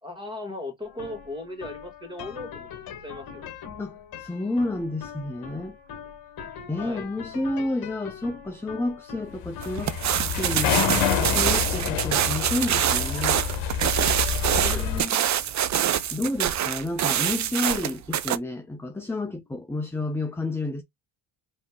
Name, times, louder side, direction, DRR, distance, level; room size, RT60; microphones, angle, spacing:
voice 1, 0.0-2.7 3.0-3.5 6.7-7.1 14.6-15.3, left 2 dB, 10° right, 2.3 m, -38 dB
sound 1, 0.8-18.0, left 7 dB, 50° left, 1.5 m, -44 dB
voice 2, 3.8-5.8 6.7-9.9 10.3-10.8 11.2-13.4 14.5-15.2 16.1-20.8, left 2 dB, 5° left, 0.7 m, -30 dB
sound 2, 9.4-15.0, left 9 dB, 70° left, 1.0 m, -28 dB
sound 3, 9.6-18.4, right 10 dB, 40° right, 0.6 m, -25 dB
4.1 x 3.1 x 3.7 m
supercardioid pair, 85°, 46 cm